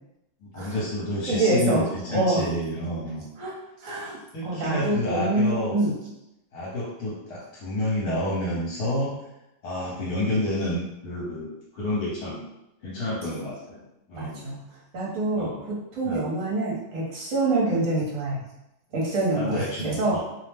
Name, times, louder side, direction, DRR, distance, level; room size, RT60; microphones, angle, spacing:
voice 1, 0.4-3.2 4.3-5.7 6.5-9.1 9.6-12.4 12.8-13.8 14.1-14.4 15.4-15.6 16.0-16.2 19.3-20.2, left 1 dB, 70° left, -7 dB, 1.3 m, -29 dB
voice 2, 1.3-2.5 3.4-3.5 3.8-5.9 14.1-14.6 14.9-18.4 18.9-20.2, right 2 dB, 55° right, -4 dB, 1.1 m, -26 dB
2.9 x 2.0 x 3.3 m, 0.88 s
omnidirectional pair, 1.8 m